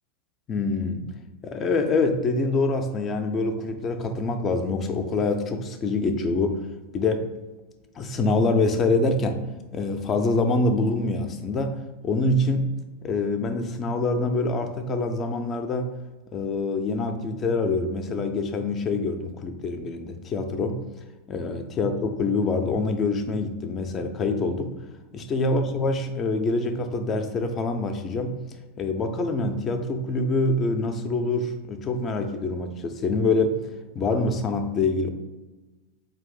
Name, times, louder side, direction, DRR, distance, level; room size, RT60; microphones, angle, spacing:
voice 1, 0.5-1.1 1.4-6.7 6.9-7.3 8.0-9.5 9.7-11.7 12.0-12.7 13.0-15.9 16.3-20.8 21.3-24.8 25.1-28.4 28.8-33.6 33.9-35.1, left 3 dB, 25° left, 7 dB, 0.5 m, -25 dB
4.5 x 2.6 x 3.8 m, 1.2 s
figure-of-eight pair, 90°, 0 cm